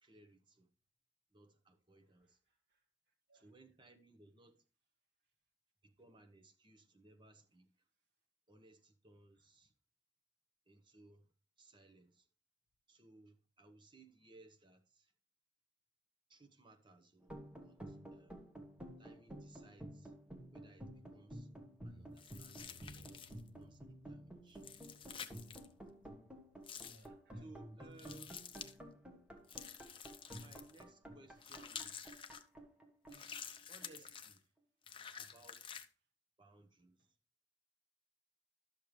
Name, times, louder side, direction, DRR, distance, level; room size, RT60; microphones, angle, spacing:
voice 1, 0.0-0.7 1.3-2.4 3.3-4.6 5.8-7.7 8.5-9.7 10.7-12.3 12.9-15.1 16.3-17.3 17.6-18.4 19.0-20.1 20.5-21.5 21.8-23.2 23.6-24.6 25.5-25.8 27.4-28.4 30.3-32.2 33.1-33.4 33.7-34.5 35.1-35.8 36.4-37.1, right 2 dB, 25° right, 1.1 m, -63 dB
voice 2, 2.2-2.8 3.3-3.5 26.8-28.3, equal, 65° right, 1.5 m, -61 dB
sound 1, 17.2-34.1, right 1 dB, 5° right, 1.3 m, -52 dB
sound 2, 22.2-23.5 24.6-25.7 26.6-27.1 28.0-28.7 29.5-30.8 31.4-32.4 33.1-34.4 34.8-35.9, left 7 dB, 30° left, 0.6 m, -50 dB
sound 3, 22.6-28.8, left 2 dB, 85° right, 2.2 m, -73 dB
12.0 x 6.9 x 3.2 m
head